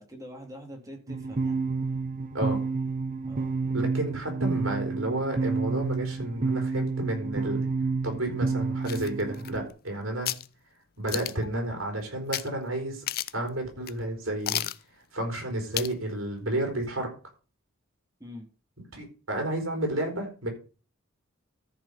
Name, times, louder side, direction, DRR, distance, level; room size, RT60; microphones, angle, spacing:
voice 1, 0.0-1.6 3.2-3.5 18.2-18.5, equal, 15° right, 1 dB, 2.4 m, -44 dB
sound 1, 1.1-9.7, right 4 dB, 40° right, 0.9 m, -30 dB
voice 2, 3.7-7.7 8.0-10.3 11.0-13.0 13.3-14.6 15.1-17.1 18.9-20.5, right 1 dB, 70° right, 3 dB, 4.2 m, -31 dB
sound 2, 8.8-9.9 10.2-10.5 11.1-11.5 12.3-12.5 12.8-12.9 13.1-13.5 13.9-14.0 14.5-14.8 15.7-16.0 16.4-16.5, left 13 dB, 50° left, 0.5 m, -32 dB
14.0 x 5.0 x 5.6 m, 0.36 s
head